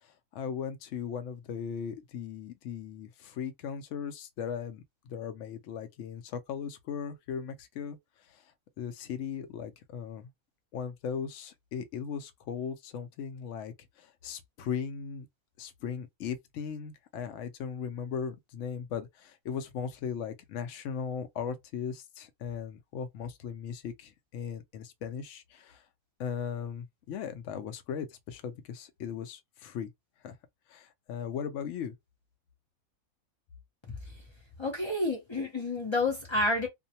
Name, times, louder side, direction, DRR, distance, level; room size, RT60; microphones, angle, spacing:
voice 1, 0.0-8.0 8.3-8.4 8.8-10.3 10.7-15.3 15.6-25.8 26.2-29.9 30.2-30.3 30.7-31.9, left 7 dB, 65° left, 0.8 m, -38 dB
voice 2, 34.6-36.7, left 2 dB, 45° left, 0.3 m, -29 dB
2.5 x 2.1 x 2.7 m
omnidirectional pair, 1.5 m